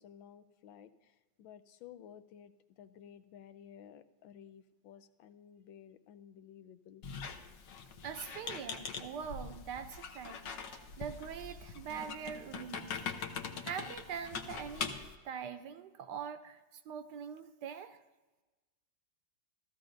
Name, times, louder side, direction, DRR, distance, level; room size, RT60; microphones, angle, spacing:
voice 1, 0.0-7.0, left 9 dB, 90° left, 11 dB, 1.4 m, -55 dB
Squeak, 7.0-15.1, left 5 dB, 70° left, 1.4 m, -43 dB
voice 2, 8.0-10.7 11.0-13.3 13.6-15.0 15.2-18.0, right 7 dB, 70° right, 10 dB, 1.2 m, -43 dB
15.0 x 14.0 x 2.6 m, 1.2 s
omnidirectional pair, 2.1 m